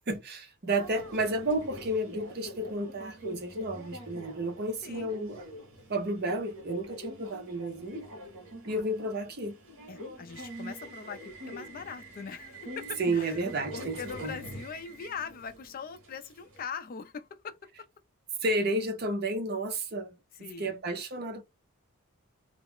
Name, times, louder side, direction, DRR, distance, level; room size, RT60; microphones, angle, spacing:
voice 1, 0.1-5.4 5.9-8.0 8.6-9.6 13.0-14.4 18.4-20.1 20.6-21.4, right 1 dB, 45° right, 0.6 m, -32 dB
Subway metro underground, 0.7-16.6, equal, 70° right, 1.0 m, -44 dB
voice 2, 9.9-13.4 13.7-17.9 20.3-20.8, left 6 dB, 40° left, 0.3 m, -41 dB
2.3 x 2.1 x 3.6 m
head